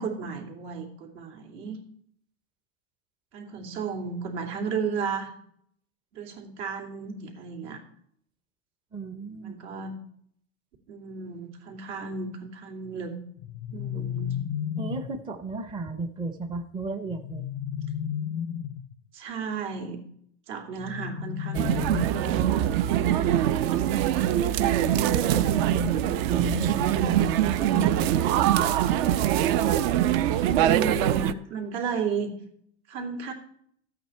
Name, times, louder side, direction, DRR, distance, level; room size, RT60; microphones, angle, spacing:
voice 1, 0.0-1.8 3.3-5.3 6.1-7.8 9.4-10.0 10.9-13.2 13.7-14.4 19.1-20.0 20.5-22.2 30.3-32.3 32.9-33.3, right 5 dB, 75° right, 2 dB, 3.0 m, -33 dB
voice 2, 8.9-9.6 13.9-14.0 14.8-17.4 24.6-28.3, right 3 dB, 15° right, 8 dB, 0.6 m, -34 dB
sound 1, 13.4-15.2 17.1-18.9 20.8-22.7, left 9 dB, 35° left, 0.5 m, -33 dB
sound 2, 21.5-31.3, right 11 dB, 55° right, 0.7 m, -23 dB
13.5 x 8.6 x 4.4 m, 0.67 s
supercardioid pair, 150°, 35 cm